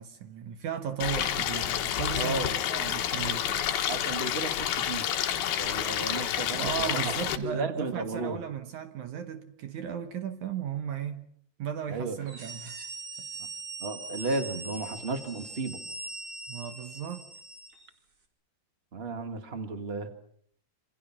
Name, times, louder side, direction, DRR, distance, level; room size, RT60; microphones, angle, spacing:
voice 1, 0.0-3.7 6.5-11.3 11.6-12.8 13.2-13.3 16.5-17.3, right 8 dB, 65° right, 2.0 m, -36 dB
Stream, 1.0-7.4, left 10 dB, 70° left, 3.1 m, -29 dB
voice 2, 2.1-2.6 3.5-5.1 5.3-8.4 11.9-12.2 13.4-13.5 13.8-15.8 18.9-20.1, right 3 dB, 80° right, 0.5 m, -34 dB
sound 1, 12.2-17.9, right 2 dB, 35° right, 3.4 m, -41 dB
27.5 x 26.5 x 6.0 m
omnidirectional pair, 4.8 m